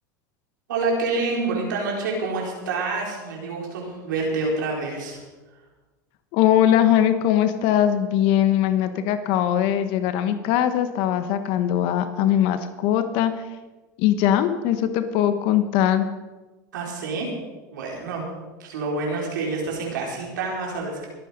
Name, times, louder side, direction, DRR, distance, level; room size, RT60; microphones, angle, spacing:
voice 1, 0.7-5.2 16.7-17.3 17.7-18.3 18.6-21.1, right 3 dB, 90° right, -1 dB, 4.8 m, -27 dB
voice 2, 6.3-13.3 14.0-16.1, left 11 dB, 60° left, 9 dB, 1.2 m, -21 dB
22.0 x 8.9 x 5.3 m, 1.2 s
supercardioid pair, 100°, 10 cm